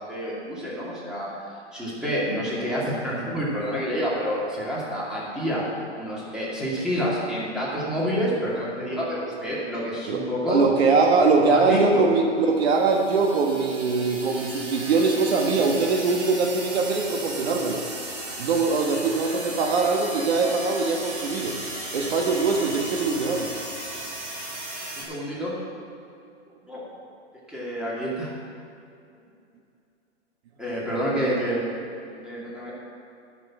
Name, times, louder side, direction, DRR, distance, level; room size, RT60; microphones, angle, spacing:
voice 1, 0.1-1.4 1.7-5.6 6.0-10.6 11.5-12.0 15.7-15.9 24.9-25.5 26.7-26.8 27.5-28.3 30.6-31.7 32.2-32.7, equal, ahead, -8 dB, 2.4 m, -28 dB
voice 2, 10.5-17.8 18.4-21.6 21.9-23.5, right 4 dB, 60° right, 2 dB, 1.4 m, -22 dB
sound 1, 12.6-25.0, right 2 dB, 30° right, 2.7 m, -35 dB
10.5 x 6.1 x 7.5 m, 2.5 s
hypercardioid pair, 145°, 35 cm